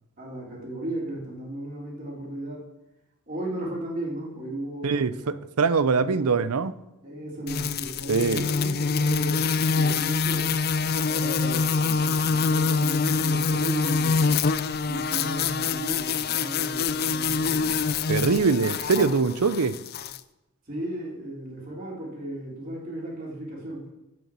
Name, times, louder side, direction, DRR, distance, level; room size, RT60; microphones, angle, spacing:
voice 1, 0.2-2.7 3.3-5.4 5.9-6.5 7.0-10.5 11.1-14.3 14.9-17.8 20.7-23.9, right 1 dB, 40° right, -4 dB, 3.7 m, -35 dB
voice 2, 4.8-6.7 8.1-8.4 18.1-19.8, right 5 dB, 90° right, 15 dB, 0.6 m, -23 dB
sound 1, 7.5-20.2, left 5 dB, 45° left, 0.4 m, -25 dB
9.3 x 8.0 x 7.5 m, 0.93 s
head